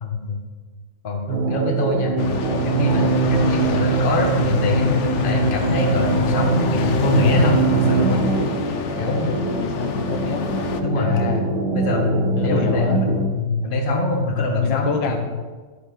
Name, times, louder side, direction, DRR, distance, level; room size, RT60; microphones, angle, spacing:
voice 1, 0.0-0.4 1.0-2.2 2.6-8.2 9.0-9.4 10.8-11.4 11.7-15.2, left 3 dB, 30° left, 1 dB, 1.3 m, -23 dB
sound 1, 1.3-13.3, right 4 dB, 65° right, 1.5 m, -23 dB
sound 2, 2.2-10.8, left 5 dB, 60° left, 0.7 m, -27 dB
voice 2, 9.6-10.4 11.0-11.5 12.4-13.0 14.6-15.2, left 5 dB, 85° left, 4 dB, 1.7 m, -26 dB
11.5 x 7.7 x 3.8 m, 1.4 s
omnidirectional pair, 2.0 m